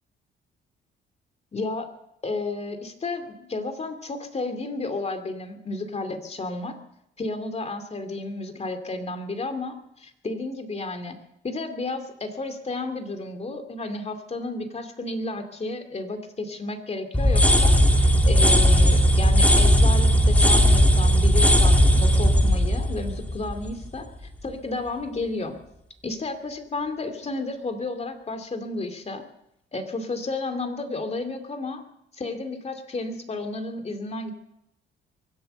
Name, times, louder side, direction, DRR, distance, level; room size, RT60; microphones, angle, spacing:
voice 1, 1.5-1.9 2.2-6.7 7.2-11.2 11.4-24.1 24.4-25.6 26.0-29.2 29.7-31.8 32.1-34.3, left 2 dB, 30° left, 6 dB, 2.4 m, -32 dB
sound 1, 17.1-24.0, equal, 5° left, 1.9 m, -17 dB
23.5 x 8.5 x 6.7 m, 0.81 s
cardioid pair, 90°, 20 cm